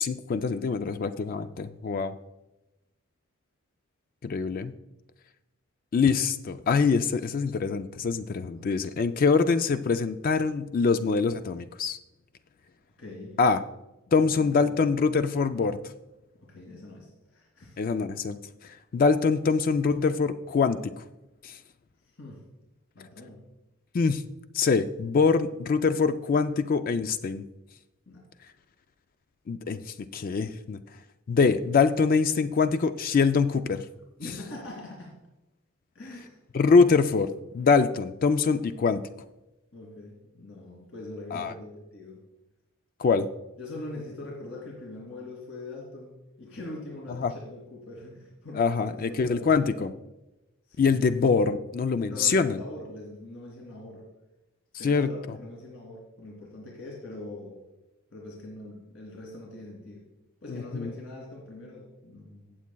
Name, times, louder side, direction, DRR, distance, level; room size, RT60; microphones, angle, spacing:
voice 1, 0.0-2.1 4.2-4.7 5.9-12.0 13.4-13.6 14.1-15.8 17.8-20.9 21.4-21.6 23.9-24.2 24.5-27.4 29.5-30.8 31.3-33.8 36.5-39.0 41.3-41.5 43.0-43.3 47.2-47.3 48.6-49.9 50.8-52.6 54.8-55.1 60.5-60.9, left 5 dB, 40° left, 10 dB, 0.3 m, -24 dB
voice 2, 13.0-13.4 14.1-14.9 16.4-17.8 22.1-22.4 22.9-23.4 28.1-28.2 34.2-35.1 35.9-36.4 39.7-42.2 43.6-49.8 50.7-51.0 52.1-54.1 54.7-57.6 58.1-60.0 60.4-62.6, left 2 dB, 65° left, -2 dB, 2.6 m, -42 dB
17.5 x 7.3 x 2.3 m, 0.98 s
head